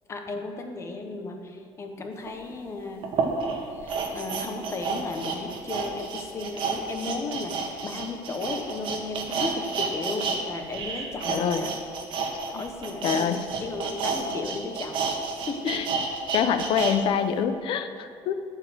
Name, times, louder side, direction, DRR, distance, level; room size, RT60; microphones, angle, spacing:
voice 1, 0.1-3.1 3.8-11.7 12.5-15.8, left 3 dB, 30° left, 4 dB, 1.2 m, -35 dB
sound 1, 2.3-2.4 3.0-10.4 10.7-17.0 17.3-17.4, right 5 dB, 55° right, 1.6 m, -30 dB
voice 2, 11.3-11.6 12.5-12.6 13.0-13.5 15.7-15.9 16.3-18.3, left 8 dB, 60° left, 10 dB, 0.7 m, -25 dB
12.0 x 4.8 x 7.7 m, 2.3 s
cardioid pair, 140°, 10 cm